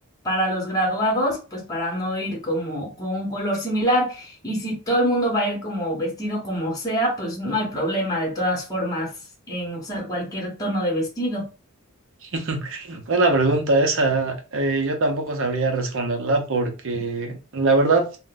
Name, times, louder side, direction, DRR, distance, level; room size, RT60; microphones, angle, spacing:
voice 1, 0.2-9.1 9.5-11.5, equal, 15° left, 0.9 m, -25 dB
voice 2, 12.2-18.1, right 2 dB, 60° right, 0.7 m, -22 dB
2.5 x 2.2 x 3.8 m
head